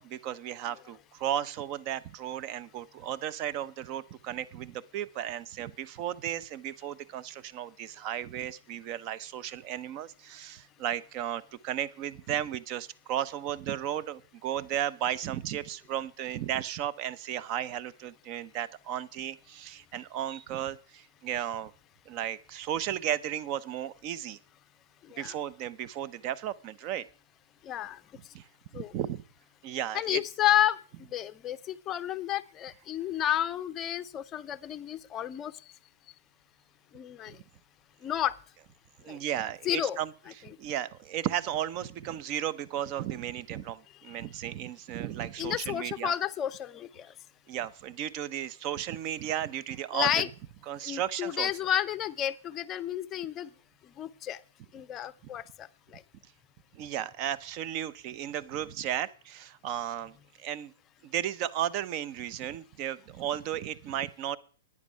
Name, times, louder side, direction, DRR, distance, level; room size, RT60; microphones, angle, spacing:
voice 1, 0.0-21.7 22.1-24.4 25.2-27.1 28.3-28.4 28.7-29.2 29.6-30.2 37.3-37.4 39.0-40.1 40.4-46.1 47.5-50.2 50.7-51.5 56.7-60.7 61.0-64.4, right 11 dB, 35° right, 17 dB, 0.7 m, -34 dB
voice 2, 27.6-28.0 28.7-28.9 29.9-30.8 31.1-35.5 36.9-37.4 38.0-38.3 39.1-39.2 39.6-40.0 45.4-47.1 49.9-50.3 50.8-53.5 54.0-54.4 54.7-55.7 55.9-56.0, left 11 dB, 20° left, 12 dB, 0.6 m, -31 dB
11.0 x 9.7 x 5.5 m, 0.41 s
hypercardioid pair, 145°, 0 cm